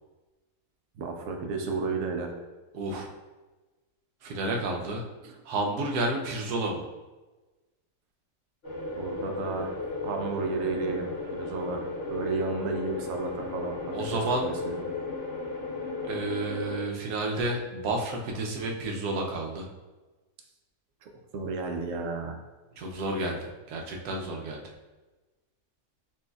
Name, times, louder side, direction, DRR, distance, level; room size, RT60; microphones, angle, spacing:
voice 1, 1.0-2.3 5.2-5.3 8.9-14.8 21.0-22.3, right 3 dB, 70° right, 3 dB, 0.9 m, -33 dB
voice 2, 2.7-3.1 4.2-5.0 5.5-6.9 13.9-14.5 16.1-19.7 22.8-24.7, right 2 dB, 85° right, 1 dB, 1.2 m, -31 dB
sound 1, 8.6-16.8, left 2 dB, 55° left, 1.3 m, -35 dB
6.0 x 2.6 x 2.3 m, 1.2 s
omnidirectional pair, 1.6 m